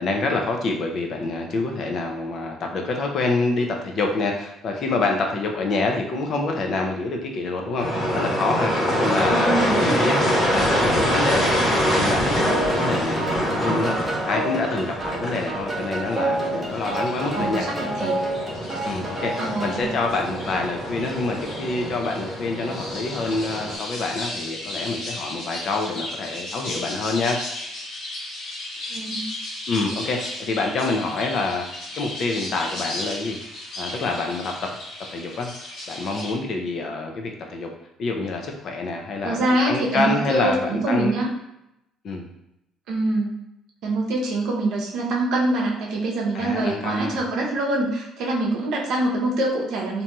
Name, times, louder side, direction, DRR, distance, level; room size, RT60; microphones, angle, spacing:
voice 1, 0.0-10.2 10.5-17.7 18.8-27.4 29.7-31.7 32.0-33.4 33.8-34.8 35.1-35.5 35.9-37.7 38.0-41.2 42.0-42.3 46.3-47.2, left 3 dB, 50° left, 2 dB, 0.5 m, -26 dB
sound 1, 7.8-23.8, equal, 15° left, 1.1 m, -25 dB
voice 2, 9.3-10.0 17.3-18.1 19.4-19.9 28.9-29.3 39.2-41.3 42.9-43.4 43.8-50.0, right 2 dB, 70° right, -1 dB, 0.7 m, -24 dB
sound 2, 12.5-19.8, right 1 dB, 20° right, 0.7 m, -29 dB
sound 3, 16.7-36.3, left 1 dB, 65° left, 0.8 m, -36 dB
2.9 x 2.6 x 2.2 m, 0.85 s
cardioid pair, 135°, 0 cm